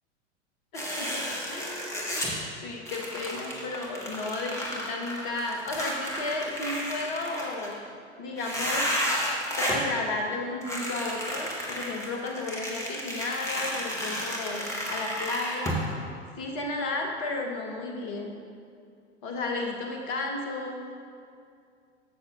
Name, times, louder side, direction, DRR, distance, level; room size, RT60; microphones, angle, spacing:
voice 1, 0.7-1.9 2.6-7.8 8.2-8.9 9.6-15.8 16.3-18.4 19.2-20.8, left 2 dB, 40° left, 2 dB, 1.3 m, -33 dB
sound 1, 0.7-2.4 2.9-7.7 8.4-9.9 10.6-15.8, equal, 10° left, 1.4 m, -32 dB
14.5 x 6.1 x 2.6 m, 2.4 s
figure-of-eight pair, 90°, 35 cm